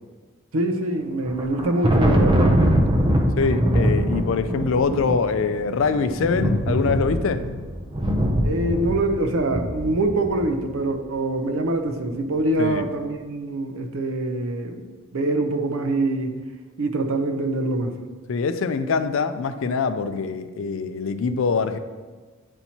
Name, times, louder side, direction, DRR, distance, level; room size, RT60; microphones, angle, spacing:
voice 1, 0.5-2.4 8.4-14.8 15.1-16.3 16.8-17.9, right 2 dB, 85° right, 6 dB, 0.7 m, -24 dB
Thunder, 1.2-10.7, equal, 25° right, 0.6 m, -22 dB
voice 2, 3.4-7.4 12.6-12.9 18.3-21.8, left 5 dB, 65° left, 11 dB, 0.4 m, -24 dB
8.9 x 4.3 x 2.8 m, 1.4 s
head